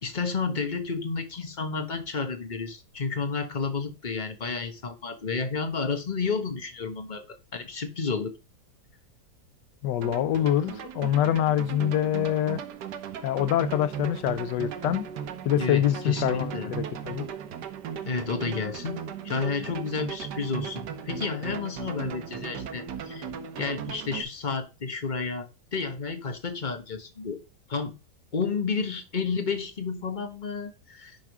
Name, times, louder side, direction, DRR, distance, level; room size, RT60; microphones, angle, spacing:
voice 1, 0.0-8.3 15.6-16.7 18.0-23.3 23.6-27.4 27.7-27.9 28.3-31.2, left 4 dB, 30° left, 1.1 m, -31 dB
voice 2, 9.8-12.6 13.2-15.0 15.4-17.2, left 11 dB, 90° left, 1.3 m, -25 dB
sound 1, 10.0-24.2, right 8 dB, 80° right, 1.5 m, -37 dB
10.5 x 3.6 x 4.7 m
omnidirectional pair, 1.8 m